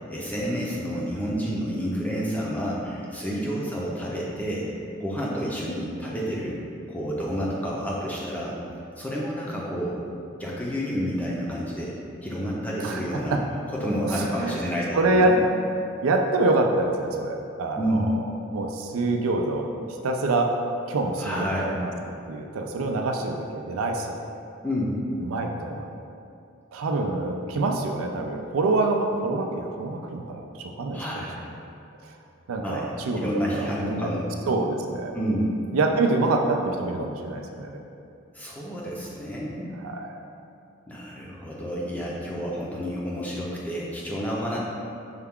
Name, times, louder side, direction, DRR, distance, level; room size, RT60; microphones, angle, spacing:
voice 1, 0.1-6.6 6.9-8.6 9.0-10.0 10.4-11.9 12.2-13.4 13.7-15.4 17.8-18.1 21.2-21.9 24.6-25.0 30.9-31.4 32.6-32.9 33.2-34.3 35.1-35.6 38.3-39.7 40.9-44.6, equal, 5° left, -5 dB, 0.5 m, -29 dB
voice 2, 12.8-13.4 14.1-14.6 14.9-15.3 16.0-18.0 18.5-20.5 20.9-21.9 22.3-24.2 25.2-25.9 26.7-31.2 32.0-32.2 32.5-34.1 34.5-35.1 35.7-37.8 39.8-40.2, right 2 dB, 85° right, 3 dB, 0.4 m, -26 dB
5.6 x 2.3 x 3.5 m, 2.6 s
head